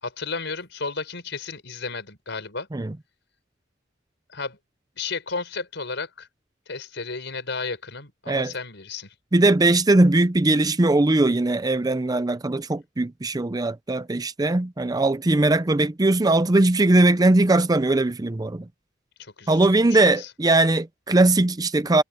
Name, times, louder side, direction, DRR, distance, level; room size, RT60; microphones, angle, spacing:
voice 1, 0.0-2.7 4.3-4.6 5.0-6.3 6.7-9.1 19.2-19.8 20.2-20.3, left 4 dB, 65° left, 6.1 m, -33 dB
voice 2, 9.3-18.7 19.5-22.0, right 2 dB, 20° right, 0.5 m, -20 dB
head